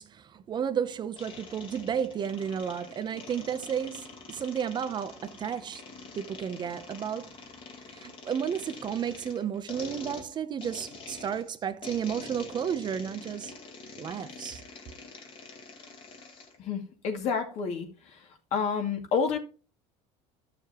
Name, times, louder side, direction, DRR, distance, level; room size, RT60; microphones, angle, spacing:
voice 1, 0.0-5.8 6.1-7.3 7.9-13.5 14.0-14.6, right 8 dB, 35° right, 0.7 m, -32 dB
sound 1, 1.2-16.6, left 4 dB, 40° left, 2.1 m, -46 dB
voice 2, 16.6-17.9 18.1-18.2 18.5-19.4, left 6 dB, 55° left, 2.4 m, -29 dB
12.0 x 6.8 x 3.0 m
supercardioid pair, 120°, 14 cm